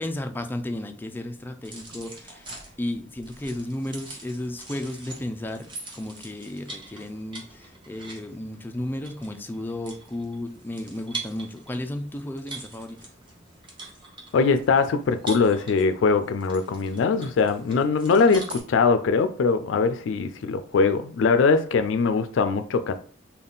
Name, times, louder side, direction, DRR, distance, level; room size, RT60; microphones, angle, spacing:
voice 1, 0.0-2.5 2.8-13.0, left 1 dB, 10° left, 0.3 m, -33 dB
sound 1, 1.6-18.6, right 2 dB, 25° right, 0.9 m, -43 dB
voice 2, 14.3-23.0, left 4 dB, 85° left, 0.4 m, -22 dB
3.5 x 2.3 x 3.8 m
head